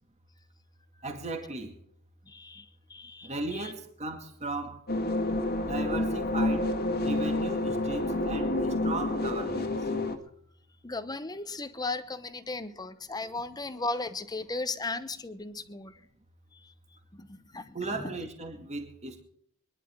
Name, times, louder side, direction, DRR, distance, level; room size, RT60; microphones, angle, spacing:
voice 1, 1.0-1.7 3.2-4.8 5.7-6.7 7.0-9.7 17.7-19.2, right 2 dB, 30° right, 2.2 m, -36 dB
voice 2, 2.3-3.3 3.6-3.7 10.8-15.9 17.1-18.1, left 3 dB, 20° left, 0.9 m, -36 dB
sound 1, 4.9-10.2, left 2 dB, 45° left, 1.7 m, -29 dB
24.5 x 11.0 x 3.8 m
head